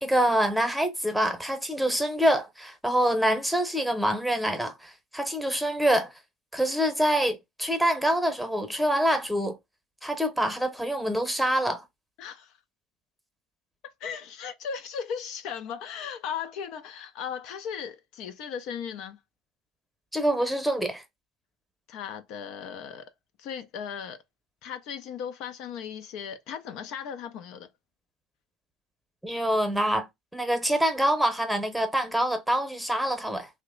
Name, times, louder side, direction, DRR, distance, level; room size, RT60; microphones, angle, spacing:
voice 1, 0.0-6.1 6.5-9.6 10.0-11.8 20.1-21.0 29.2-30.1 30.3-33.5, equal, ahead, 0.9 m, -25 dB
voice 2, 12.2-12.5 14.0-19.2 21.9-23.1 23.4-24.2 24.6-27.7, left 7 dB, 70° left, 0.5 m, -37 dB
2.9 x 2.1 x 3.7 m
supercardioid pair, 85°, 0 cm